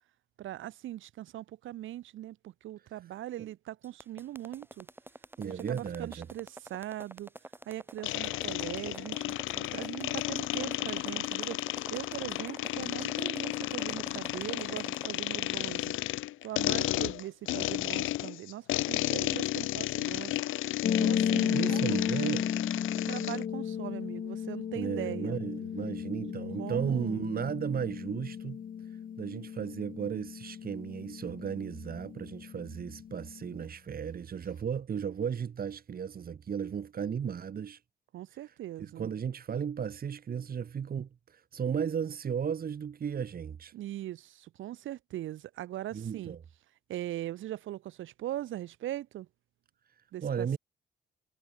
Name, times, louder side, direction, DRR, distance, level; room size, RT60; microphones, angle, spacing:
voice 1, 0.4-4.9 5.4-7.3 7.7-15.9 16.4-20.4 21.0-22.0 23.1-25.4 26.6-27.3 38.1-39.1 43.7-46.4 46.9-49.3 50.1-50.6, right 13 dB, 80° right, 2.2 m, -40 dB
sound 1, 3.8-15.1, right 1 dB, 10° right, 5.2 m, -48 dB
voice 2, 5.4-6.3 21.4-22.4 24.8-28.6 29.2-37.8 38.8-43.7 45.9-46.4 50.2-50.6, right 7 dB, 50° right, 2.4 m, -35 dB
sound 2, 8.0-23.4, left 16 dB, 85° left, 1.1 m, -33 dB
sound 3, 20.8-33.6, left 8 dB, 45° left, 0.8 m, -34 dB
cardioid pair, 90°, 20 cm